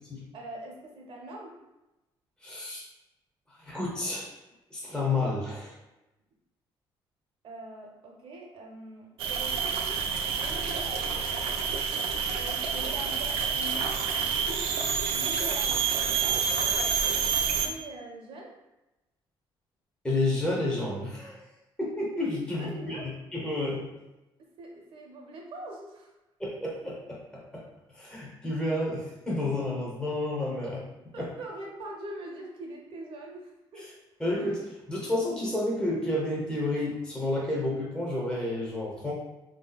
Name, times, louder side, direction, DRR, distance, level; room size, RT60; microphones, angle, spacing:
voice 1, 0.3-1.6 7.4-9.6 10.4-11.3 12.3-18.5 22.4-23.1 24.4-26.1 31.1-33.8, right 1 dB, 70° right, 0 dB, 0.8 m, -43 dB
voice 2, 2.4-2.8 3.6-4.3 4.7-5.7 20.0-21.4 21.8-23.0 23.3-23.9 26.4-27.6 27.9-30.9 31.2-31.3 33.8-33.9 34.2-39.1, left 2 dB, 10° left, -5 dB, 0.7 m, -30 dB
sound 1, 9.2-17.7, right 6 dB, 90° right, 0.4 m, -28 dB
3.5 x 2.7 x 2.2 m, 0.99 s
cardioid pair, 105°, 9 cm